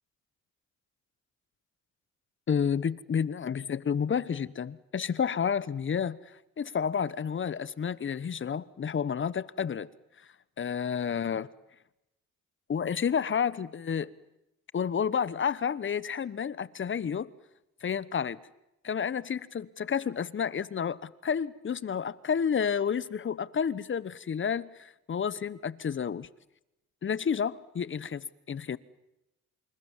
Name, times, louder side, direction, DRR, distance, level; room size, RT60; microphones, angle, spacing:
voice 1, 2.5-9.9 10.6-11.5 12.7-14.1 14.7-17.3 17.8-18.4 18.8-26.3 27.0-28.8, left 7 dB, 40° left, 1.1 m, -30 dB
28.5 x 28.0 x 7.4 m
cardioid pair, 90°, 30 cm